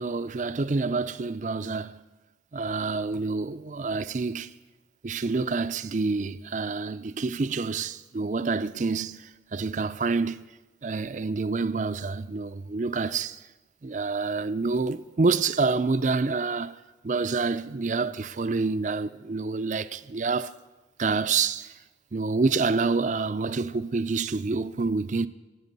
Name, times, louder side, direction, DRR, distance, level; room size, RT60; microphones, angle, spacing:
voice 1, 0.0-2.0 2.5-4.5 5.0-10.4 10.8-13.4 13.8-16.8 17.0-20.5 21.0-21.7 22.1-25.3, right 4 dB, 45° right, 0.5 m, -27 dB
25.0 x 9.7 x 5.4 m
head